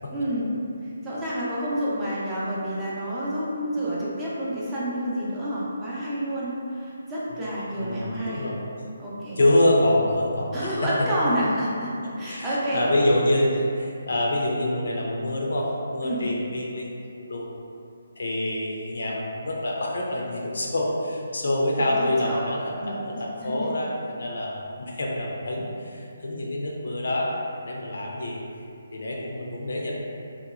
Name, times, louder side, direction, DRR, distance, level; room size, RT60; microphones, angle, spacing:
voice 1, 0.1-0.5 0.8-8.5 9.0-9.4 10.5-12.8 16.0-16.2 21.8-22.4 22.8-23.0 23.4-23.8, equal, 15° right, -9 dB, 0.5 m, -29 dB
voice 2, 7.7-8.6 9.4-10.9 12.3-16.9 17.3-17.5 18.2-28.4 28.9-29.9, left 1 dB, 70° left, -2 dB, 0.4 m, -26 dB
2.9 x 2.0 x 2.4 m, 2.6 s
figure-of-eight pair, 150°, 0 cm